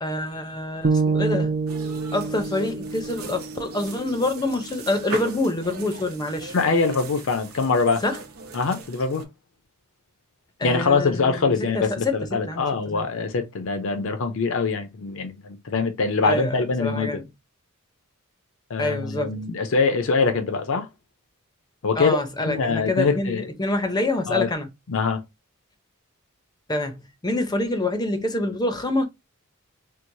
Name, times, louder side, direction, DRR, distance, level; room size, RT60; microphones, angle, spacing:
voice 1, 0.0-1.5 2.1-6.5 8.0-8.2 10.6-12.7 12.9-13.1 16.2-17.3 18.8-19.3 22.0-24.7 26.7-29.0, left 2 dB, 20° left, 0.6 m, -26 dB
sound 1, 0.8-5.0, right 4 dB, 50° right, 0.5 m, -27 dB
sound 2, 1.7-9.2, right 3 dB, 70° right, 0.9 m, -39 dB
voice 2, 6.5-8.0 8.5-9.2 10.6-17.2 18.7-20.9 21.8-23.4 24.3-24.5 24.9-25.2, left 4 dB, 65° left, 0.5 m, -23 dB
4.5 x 2.0 x 2.6 m
head